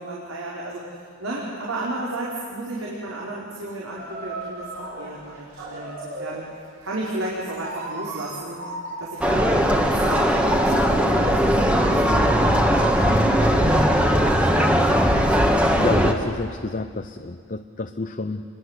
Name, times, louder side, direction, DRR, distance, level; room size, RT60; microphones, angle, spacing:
voice 1, 0.0-6.4 6.8-8.6 9.0-12.6 13.0-15.4, right 1 dB, 85° right, -5 dB, 4.7 m, -33 dB
sound 1, 4.0-6.5 7.1-16.6, right 2 dB, 55° right, 5.9 m, -34 dB
sound 2, 9.2-16.1, equal, 5° right, 1.6 m, -19 dB
voice 2, 15.7-18.4, left 3 dB, 40° left, 6 dB, 0.8 m, -29 dB
29.5 x 22.0 x 8.2 m, 2.1 s
head